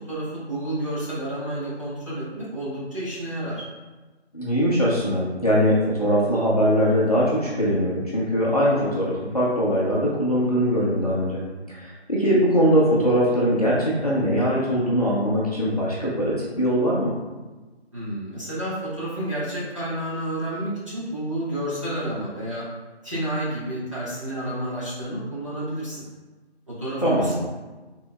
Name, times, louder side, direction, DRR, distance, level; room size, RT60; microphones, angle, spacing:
voice 1, 0.0-3.6 17.9-22.7 23.0-26.0 26.7-27.3, right 1 dB, 30° right, -11 dB, 1.4 m, -30 dB
voice 2, 4.3-11.4 11.7-17.1 27.0-27.3, equal, 35° left, -6 dB, 0.7 m, -21 dB
4.9 x 3.6 x 2.3 m, 1.2 s
figure-of-eight pair, 175°, 33 cm